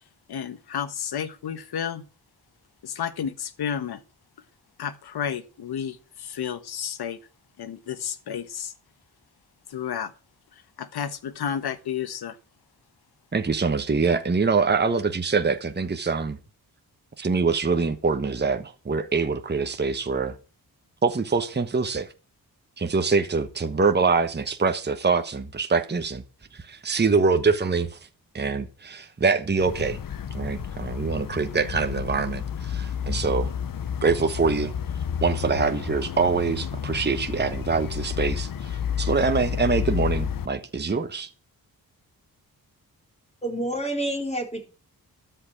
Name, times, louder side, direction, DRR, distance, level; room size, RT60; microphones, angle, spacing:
voice 1, 0.3-2.0 2.8-4.0 4.8-7.2 7.6-8.7 9.7-10.1 10.8-12.4, left 8 dB, 90° left, 1.3 m, -31 dB
voice 2, 13.3-16.4 17.2-20.4 21.0-22.1 22.8-26.2 26.5-28.0 28.3-30.0 30.3-33.5 34.0-34.7 35.2-41.3, right 4 dB, 25° right, 1.2 m, -24 dB
sound 1, 29.6-40.5, left 8 dB, 60° left, 0.8 m, -31 dB
voice 3, 43.4-44.7, right 1 dB, 15° left, 4.5 m, -28 dB
13.0 x 5.8 x 8.4 m
cardioid pair, 80°, 37 cm